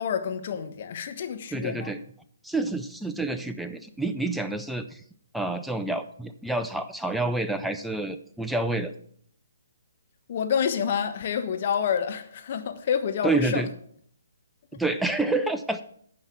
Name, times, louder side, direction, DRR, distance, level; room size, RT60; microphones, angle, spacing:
voice 1, 0.0-1.9 10.3-13.7, left 7 dB, 45° left, 1.2 m, -28 dB
voice 2, 1.5-2.0 2.4-5.0 5.3-8.9 13.2-13.7 14.7-15.8, right 2 dB, ahead, 0.5 m, -28 dB
9.3 x 5.5 x 7.4 m
figure-of-eight pair, 135°, 0 cm